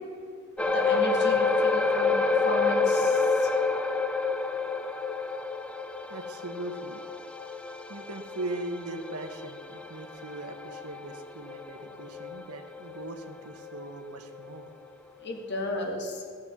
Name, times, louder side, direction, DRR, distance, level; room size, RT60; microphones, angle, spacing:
voice 1, 0.6-3.5 15.2-16.2, left 2 dB, 50° left, 2 dB, 2.2 m, -34 dB
sound 1, 0.6-13.3 13.6-13.8 14.3-14.4, left 4 dB, 5° left, 0.5 m, -28 dB
voice 2, 6.1-7.0 7.9-14.7, right 2 dB, 85° right, 6 dB, 1.3 m, -39 dB
17.5 x 6.6 x 7.2 m, 2.3 s
head